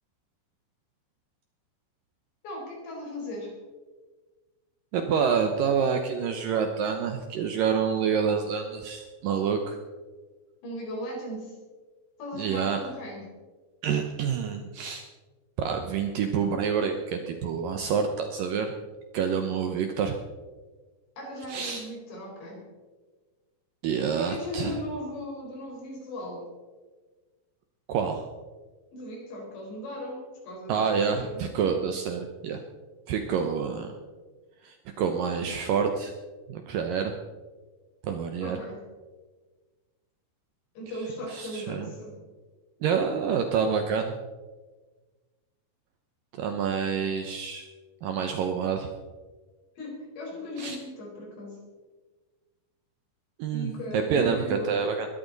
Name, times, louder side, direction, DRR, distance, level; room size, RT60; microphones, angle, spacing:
voice 1, 2.4-3.5 10.6-11.6 12.2-13.2 21.2-22.6 24.2-26.5 28.9-31.4 38.4-38.8 40.8-42.1 49.7-51.6 53.5-54.7, equal, 75° left, -1 dB, 6.6 m, -37 dB
voice 2, 4.9-9.8 12.3-12.8 13.8-15.1 15.6-18.7 19.1-20.2 21.5-21.8 23.8-24.8 27.9-28.3 30.7-32.6 33.1-33.9 34.6-36.1 36.5-37.2 38.0-38.6 41.3-41.9 42.8-44.2 46.3-47.7 48.0-48.9 50.6-50.8 53.4-55.1, right 6 dB, 85° right, 5 dB, 1.9 m, -27 dB
20.5 x 13.0 x 4.0 m, 1.3 s
omnidirectional pair, 5.2 m